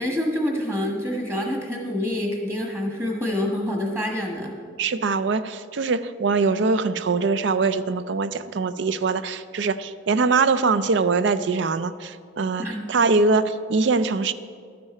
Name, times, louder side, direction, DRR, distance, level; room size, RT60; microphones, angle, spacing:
voice 1, 0.0-4.5 12.6-12.8, left 1 dB, 15° right, 0 dB, 1.4 m, -26 dB
voice 2, 4.8-14.3, right 4 dB, 60° right, 14 dB, 0.4 m, -22 dB
12.0 x 9.4 x 4.3 m, 2.2 s
head